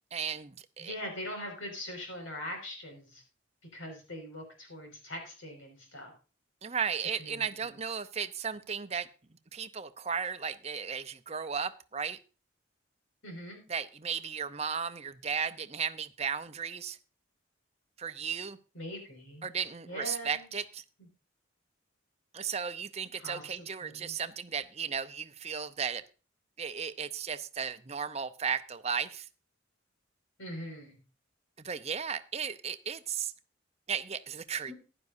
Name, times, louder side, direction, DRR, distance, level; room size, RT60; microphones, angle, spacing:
voice 1, 0.1-0.9 6.6-9.1 9.5-12.2 13.7-17.0 18.0-18.6 19.4-20.8 22.3-26.0 26.6-29.3 31.6-33.3 33.9-34.7, right 6 dB, 30° right, 11 dB, 0.7 m, -35 dB
voice 2, 0.8-3.2 3.7-6.1 7.2-7.8 13.2-13.6 18.7-19.5 19.9-20.5 23.2-24.2 30.4-31.0 34.7-34.8, left 1 dB, 85° left, 3 dB, 5.4 m, -42 dB
15.5 x 11.0 x 2.6 m, 0.34 s
head